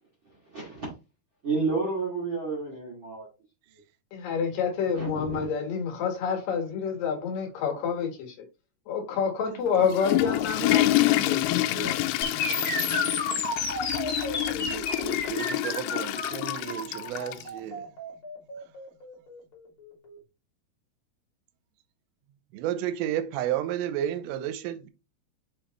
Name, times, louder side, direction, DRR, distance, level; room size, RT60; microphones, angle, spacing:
voice 1, 0.4-0.9 1.4-3.3 4.9-5.4 10.2-11.9 12.3-12.8, right 4 dB, 35° right, 2.5 m, -32 dB
voice 2, 4.1-8.4 8.9-12.1, left 6 dB, 60° left, 2.8 m, -28 dB
Water / Toilet flush, 9.7-17.5, left 16 dB, 85° left, 2.4 m, -27 dB
sound 1, 12.2-20.2, left 3 dB, 35° left, 2.4 m, -32 dB
voice 3, 14.5-17.9 22.5-24.9, right 11 dB, 90° right, 2.9 m, -32 dB
6.7 x 5.1 x 3.0 m
omnidirectional pair, 4.9 m